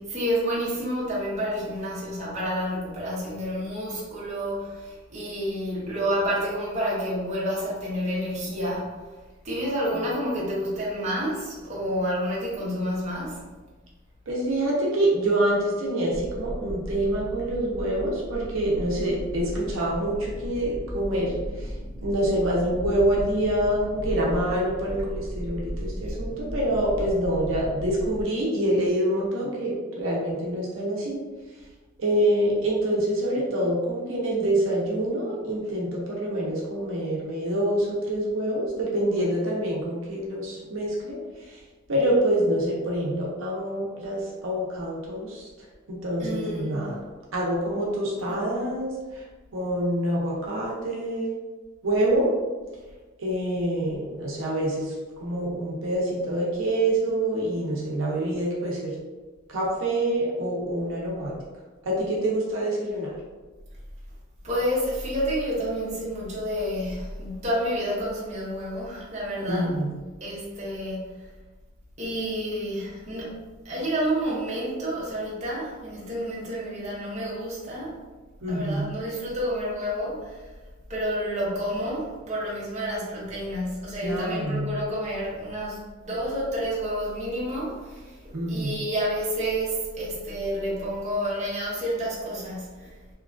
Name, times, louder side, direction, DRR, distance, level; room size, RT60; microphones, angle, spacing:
voice 1, 0.0-9.1 9.4-13.6 46.2-46.9 48.3-48.5 64.4-69.7 70.2-71.1 72.0-78.0 78.5-80.5 80.9-88.2 88.5-92.9, equal, 35° right, -6 dB, 0.8 m, -29 dB
voice 2, 14.3-21.7 22.0-31.2 32.0-41.6 41.9-45.5 45.9-46.9 47.3-49.2 49.5-51.4 51.8-52.3 53.2-54.9 55.2-59.0 59.5-61.3 61.9-63.1 69.5-69.9 78.4-78.9 84.0-84.8 88.3-88.7, right 1 dB, 85° right, -4 dB, 0.6 m, -26 dB
sound 1, 16.1-28.2, equal, 25° left, 0.6 m, -35 dB
2.9 x 2.3 x 2.4 m, 1.3 s
head